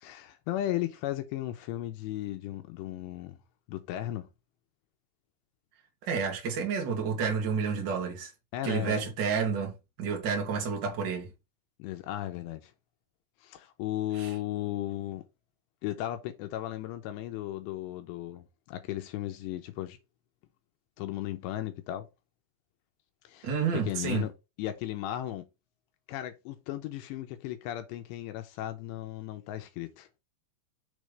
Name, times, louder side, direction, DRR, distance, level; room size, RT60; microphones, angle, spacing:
voice 1, 0.0-3.4 3.7-4.3 8.5-9.0 11.8-12.7 13.4-15.2 15.8-20.0 21.0-22.1 23.2-24.3 24.6-25.5 26.1-30.1, left 13 dB, 80° left, 2.8 m, -35 dB
voice 2, 6.0-8.3 8.6-11.3 14.1-14.3 23.4-24.3, right 6 dB, 45° right, 1.4 m, -30 dB
7.1 x 3.2 x 5.1 m
omnidirectional pair, 5.1 m